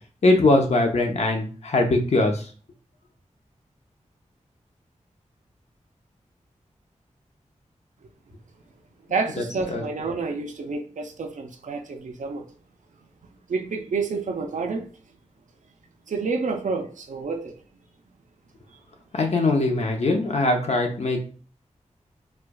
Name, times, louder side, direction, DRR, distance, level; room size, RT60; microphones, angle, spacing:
voice 1, 0.2-2.4 9.4-9.8 19.1-21.2, left 2 dB, 60° left, 0.7 m, -21 dB
voice 2, 9.1-12.5 13.5-14.8 16.1-17.5, right 4 dB, 85° right, 0.5 m, -29 dB
4.3 x 2.3 x 2.3 m
wide cardioid pair, 100°, 13 cm